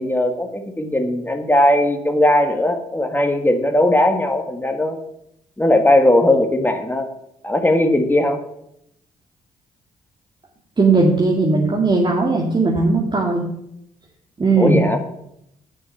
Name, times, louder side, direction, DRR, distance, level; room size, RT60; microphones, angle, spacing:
voice 1, 0.0-5.0 5.6-7.1 7.4-8.4 14.6-15.0, left 1 dB, 10° left, 6 dB, 1.7 m, -18 dB
voice 2, 10.8-13.4 14.4-14.8, right 3 dB, 30° right, -2 dB, 2.3 m, -17 dB
9.7 x 7.0 x 6.9 m, 0.76 s
supercardioid pair, 60°, 15 cm